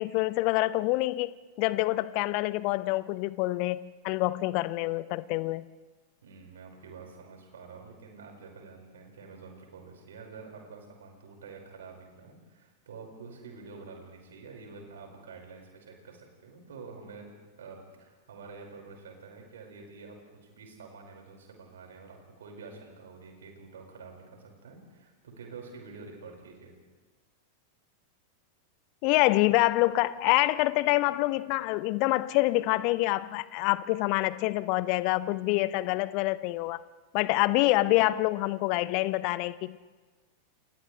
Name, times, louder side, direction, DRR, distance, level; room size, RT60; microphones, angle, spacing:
voice 1, 0.0-5.7 29.0-36.8 37.1-39.8, left 19 dB, 45° left, 17 dB, 0.7 m, -26 dB
voice 2, 6.2-17.3 17.6-26.7, right 4 dB, 65° right, 1 dB, 5.3 m, -48 dB
29.0 x 28.5 x 3.3 m, 1.3 s
figure-of-eight pair, 90°, 0 cm